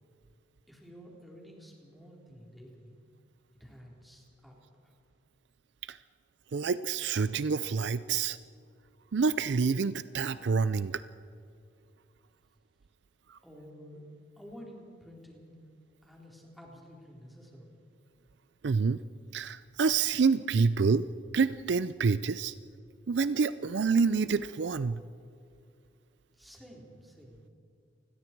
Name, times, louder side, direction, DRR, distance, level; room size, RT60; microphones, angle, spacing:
voice 1, 0.7-3.0 3.6-4.5 4.8-5.0 13.4-14.0 14.4-15.5 16.0-17.8 26.4-27.5, equal, ahead, -2 dB, 4.0 m, -51 dB
voice 2, 6.5-8.4 9.1-11.0 13.3-13.4 18.6-19.0 19.3-21.1 21.3-22.5 23.1-25.0, right 5 dB, 60° right, 14 dB, 0.4 m, -27 dB
28.5 x 21.0 x 4.6 m, 2.4 s
head